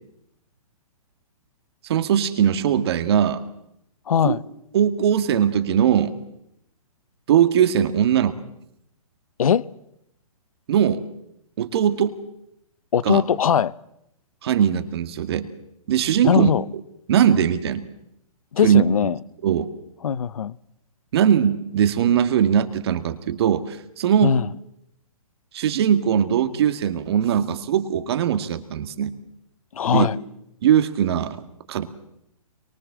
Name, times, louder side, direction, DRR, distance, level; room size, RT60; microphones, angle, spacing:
voice 1, 1.8-3.4 4.2-4.4 4.7-6.1 7.3-8.3 10.7-11.0 11.6-12.2 13.0-13.2 14.4-15.5 15.9-16.5 17.1-17.8 18.6-18.8 19.4-19.7 21.1-24.4 25.5-29.1 29.9-30.1 30.6-31.4 31.7-31.9, right 9 dB, 45° right, 2.0 m, -20 dB
voice 2, 4.1-4.4 9.4-9.7 12.9-13.7 16.2-16.6 18.5-19.2 20.0-20.6 24.2-24.5 29.7-30.2, left 8 dB, 70° left, 1.0 m, -20 dB
26.5 x 23.5 x 7.4 m
hypercardioid pair, 160°, 19 cm